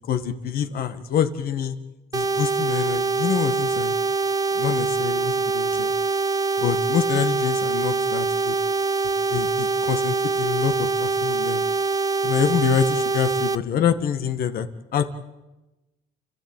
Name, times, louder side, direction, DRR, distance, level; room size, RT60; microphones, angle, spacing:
voice 1, 0.1-1.8 2.1-3.9 4.6-5.9 6.6-8.6 9.3-11.6 12.2-15.1, left 8 dB, 60° left, 9 dB, 1.8 m, -26 dB
sound 1, 2.1-13.5, right 4 dB, 20° right, 0.8 m, -24 dB
30.0 x 13.5 x 9.1 m, 1.1 s
cardioid pair, 110°, 17 cm